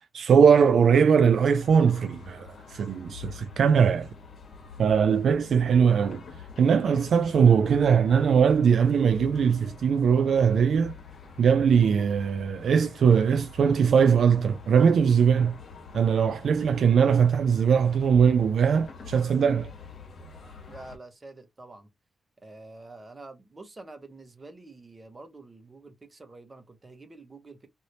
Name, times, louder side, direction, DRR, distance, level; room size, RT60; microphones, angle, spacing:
voice 1, 0.1-4.1 4.8-6.2 6.6-10.9 11.4-15.6 15.9-19.7, right 6 dB, 70° right, 0.3 m, -21 dB
sound 1, 1.2-21.0, left 5 dB, 60° left, 1.2 m, -46 dB
voice 2, 20.7-21.9 22.4-27.7, right 2 dB, 30° right, 1.0 m, -47 dB
3.2 x 2.7 x 2.7 m
cardioid pair, 80°, 0 cm